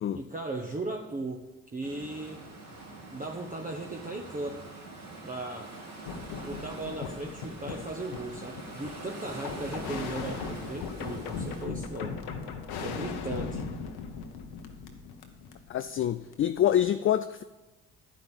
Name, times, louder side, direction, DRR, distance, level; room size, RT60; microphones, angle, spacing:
voice 1, 0.1-1.4 1.7-2.4 3.1-4.6 5.2-5.7 6.4-12.2 12.8-13.6, right 2 dB, 20° right, 1 dB, 1.1 m, -37 dB
sound 1, 1.8-11.6, right 2 dB, 55° right, 3.2 m, -44 dB
sound 2, 6.1-16.6, left 5 dB, 70° left, 1.0 m, -38 dB
voice 2, 15.7-17.4, left 10 dB, 35° left, 11 dB, 0.4 m, -26 dB
11.0 x 5.2 x 7.0 m, 1.1 s
hypercardioid pair, 45°, 40 cm